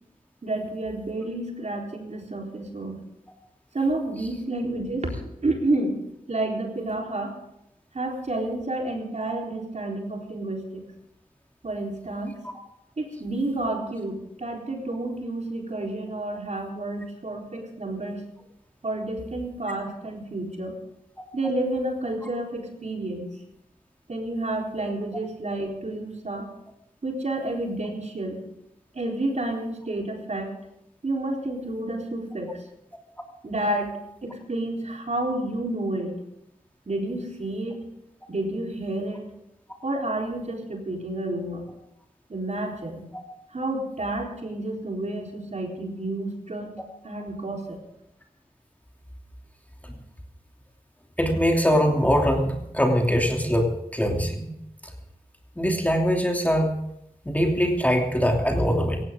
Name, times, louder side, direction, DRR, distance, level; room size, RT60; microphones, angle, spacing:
voice 1, 0.4-3.0 3.7-6.0 6.3-7.4 7.9-10.9 11.6-12.4 13.0-18.2 18.8-20.8 21.3-23.3 24.1-26.5 27.0-28.4 28.9-30.5 31.0-32.6 33.4-36.2 36.9-37.8 38.3-39.3 39.8-41.6 42.3-43.0 43.5-46.7 47.0-47.8, right 2 dB, 50° right, 0 dB, 4.0 m, -30 dB
voice 2, 51.2-54.5 55.6-56.7 57.2-59.0, equal, 10° left, 1 dB, 3.0 m, -22 dB
17.0 x 16.5 x 3.8 m, 0.82 s
cardioid pair, 60°, 15 cm